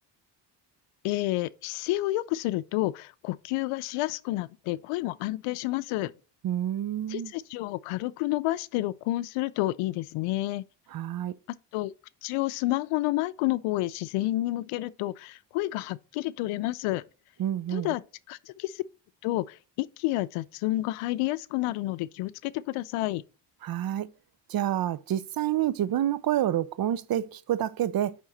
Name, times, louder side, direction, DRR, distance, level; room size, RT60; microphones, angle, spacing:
voice 1, 1.0-6.1 7.1-10.6 11.7-11.9 12.2-17.0 17.7-18.0 18.3-18.8 19.2-23.2, left 17 dB, 80° left, 0.6 m, -30 dB
voice 2, 6.4-7.3 10.9-11.4 17.4-18.0 23.6-24.1 24.5-28.2, right 11 dB, 45° right, 0.5 m, -28 dB
9.7 x 3.7 x 4.0 m
supercardioid pair, 55°, 50 cm